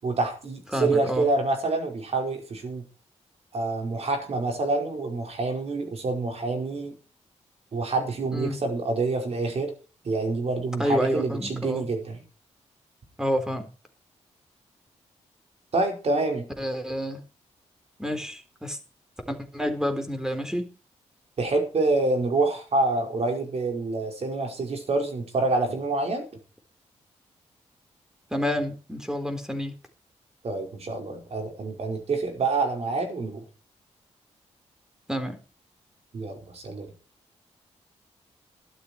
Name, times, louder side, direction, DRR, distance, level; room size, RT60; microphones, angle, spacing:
voice 1, 0.0-2.8 3.5-6.9 7.7-9.7 10.0-12.2 15.7-16.5 21.4-26.2 30.4-33.4 36.1-36.9, right 3 dB, 60° right, 3 dB, 5.2 m, -27 dB
voice 2, 0.7-1.3 8.3-8.6 10.8-11.8 13.2-13.7 16.6-17.2 18.0-18.8 19.3-20.6 28.3-29.7 35.1-35.4, equal, 5° right, 7 dB, 3.8 m, -28 dB
13.0 x 12.0 x 4.7 m, 0.36 s
cardioid pair, 75°, 12 cm